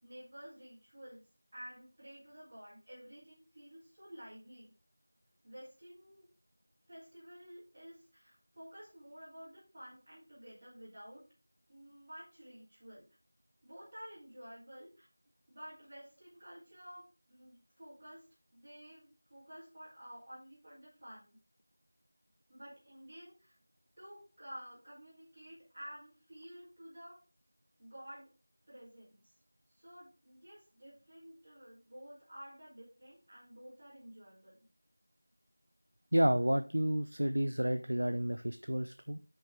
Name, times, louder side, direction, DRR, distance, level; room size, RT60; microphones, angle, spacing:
voice 1, 0.0-1.2 1.5-4.7 5.4-6.3 6.9-11.2 11.7-13.1 13.6-15.1 15.5-18.2 18.5-21.4 22.5-23.5 24.0-27.2 27.8-28.3 28.7-29.2 29.7-34.6, equal, 30° right, -12 dB, 3.3 m, -52 dB
voice 2, 36.1-39.2, equal, 75° right, 10 dB, 0.5 m, -30 dB
8.4 x 5.4 x 3.5 m, 0.33 s
figure-of-eight pair, 175°, 0 cm